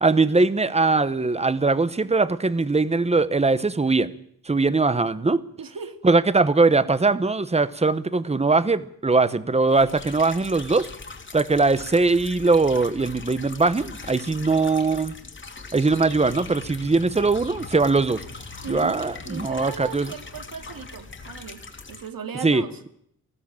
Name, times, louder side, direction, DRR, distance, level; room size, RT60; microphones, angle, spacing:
voice 1, 0.0-4.1 4.5-5.4 6.0-10.9 11.3-15.1 15.7-18.2 18.7-20.1 22.4-22.6, right 3 dB, 20° right, 15 dB, 0.9 m, -21 dB
voice 2, 5.6-6.0 18.6-19.0 19.3-21.6 21.9-22.8, right 6 dB, 80° right, 8 dB, 2.5 m, -37 dB
sound 1, 9.7-22.1, left 4 dB, 35° left, 2.4 m, -41 dB
sound 2, 15.9-21.6, left 5 dB, 85° left, 3.6 m, -46 dB
19.0 x 16.0 x 8.7 m, 0.68 s
wide cardioid pair, 160°, 34 cm